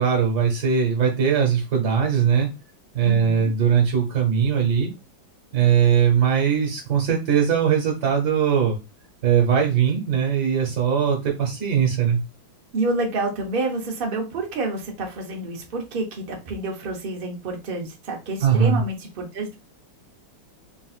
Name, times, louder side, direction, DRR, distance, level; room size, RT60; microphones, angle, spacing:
voice 1, 0.0-2.5 2.9-4.9 5.5-8.8 9.2-12.2 18.4-18.8, right 7 dB, 60° right, 0 dB, 1.5 m, -20 dB
voice 2, 3.0-3.5 12.7-19.6, right 2 dB, 75° right, 1 dB, 0.5 m, -28 dB
3.8 x 2.5 x 2.4 m, 0.27 s
omnidirectional pair, 2.1 m